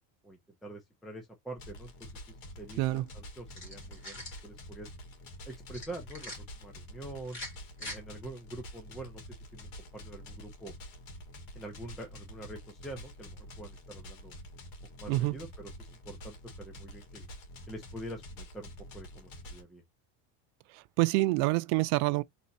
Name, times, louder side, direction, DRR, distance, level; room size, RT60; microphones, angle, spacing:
voice 1, 0.2-1.9 2.3-4.9 5.5-6.3 6.6-7.4 7.8-10.7 11.6-14.3 15.0-17.3 17.7-19.8, right 1 dB, ahead, 0.5 m, -46 dB
sound 1, 1.6-19.6, equal, 50° left, 1.5 m, -47 dB
sound 2, 3.5-4.4 5.7-6.4 7.2-8.0, left 1 dB, 25° left, 1.7 m, -43 dB
voice 2, 15.1-15.4 20.7-22.2, right 20 dB, 80° right, 0.6 m, -27 dB
3.3 x 2.7 x 4.0 m
cardioid pair, 165°, 43 cm